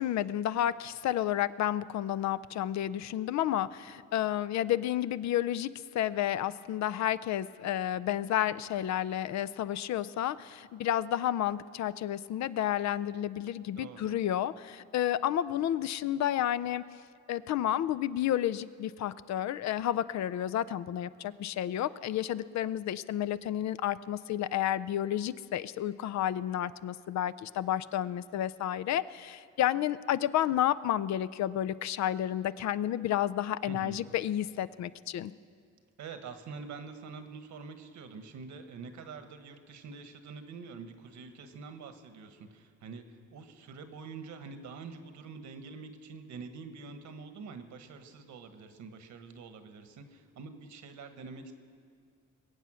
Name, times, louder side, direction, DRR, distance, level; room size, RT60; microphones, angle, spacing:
voice 1, 0.0-16.8 17.3-35.3, left 11 dB, 65° left, 16 dB, 0.5 m, -31 dB
voice 2, 13.7-14.2 33.6-34.1 36.0-51.5, right 4 dB, 70° right, 8 dB, 1.3 m, -46 dB
22.0 x 8.2 x 6.2 m, 2.2 s
cardioid pair, 90°, 30 cm